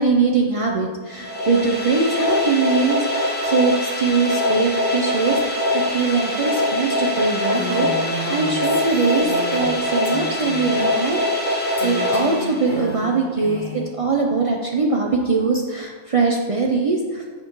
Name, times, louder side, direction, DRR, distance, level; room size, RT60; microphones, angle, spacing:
voice 1, 0.0-17.2, right 4 dB, 55° right, -1 dB, 0.3 m, -22 dB
sound 1, 1.1-13.0, left 1 dB, 10° left, 0.7 m, -23 dB
Female speech woman speaking, 7.5-9.8 10.0-10.8 11.8-13.9, equal, 55° left, 1.3 m, -32 dB
6.7 x 5.0 x 3.0 m, 1.5 s
omnidirectional pair, 1.2 m